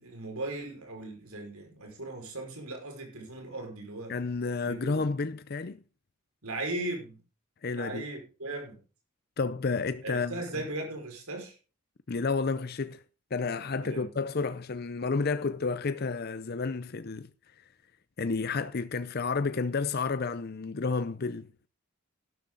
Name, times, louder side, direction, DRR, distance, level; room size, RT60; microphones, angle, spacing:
voice 1, 0.0-4.1 4.6-5.0 6.4-7.2 7.7-8.8 10.0-11.6 13.8-14.1, right 2 dB, 85° right, 5.3 m, -38 dB
voice 2, 4.1-5.8 7.6-8.0 9.4-10.4 12.1-13.0 13.3-17.3 18.2-21.5, left 4 dB, 45° left, 0.5 m, -31 dB
12.0 x 12.0 x 3.9 m
head